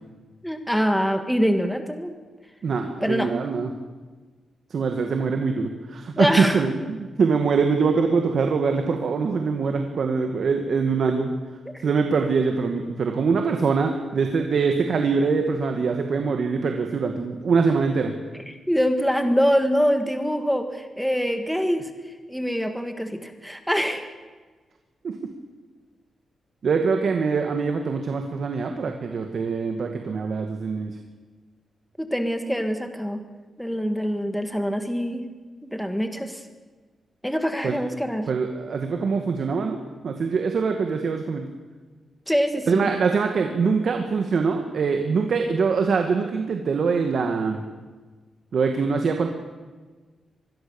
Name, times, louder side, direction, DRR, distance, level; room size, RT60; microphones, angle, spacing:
voice 1, 0.4-2.1 3.0-3.3 6.2-6.6 11.7-11.9 18.5-21.9 22.3-24.1 32.0-33.2 33.6-35.2 35.6-36.4 37.2-38.3 42.3-42.9, equal, ahead, 6 dB, 1.7 m, -24 dB
voice 2, 2.6-3.7 4.7-11.3 11.8-18.1 25.0-25.1 26.6-31.0 37.6-37.8 38.3-39.8 40.0-41.5 42.7-47.6 48.5-49.3, right 5 dB, 55° right, 4 dB, 2.0 m, -23 dB
25.5 x 21.0 x 7.2 m, 1.3 s
wide cardioid pair, 165°, 0 cm